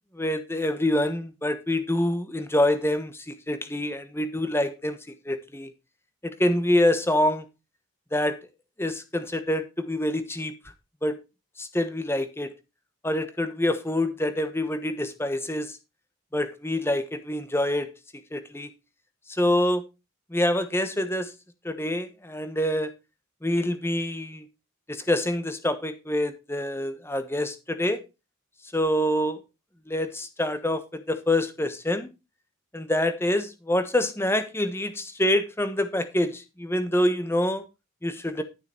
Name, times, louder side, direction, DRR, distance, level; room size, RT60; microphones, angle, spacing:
voice 1, 0.2-5.0 5.3-5.7 6.4-7.4 8.1-8.4 8.8-10.5 11.0-11.2 11.6-12.5 13.0-15.8 16.3-17.9 18.3-18.7 19.4-19.8 20.3-21.3 21.6-22.9 23.4-24.4 24.9-28.0 28.7-29.4 29.9-32.1 32.7-37.6 38.0-38.4, left 1 dB, 10° left, 1.1 m, -26 dB
12.0 x 6.8 x 4.4 m
head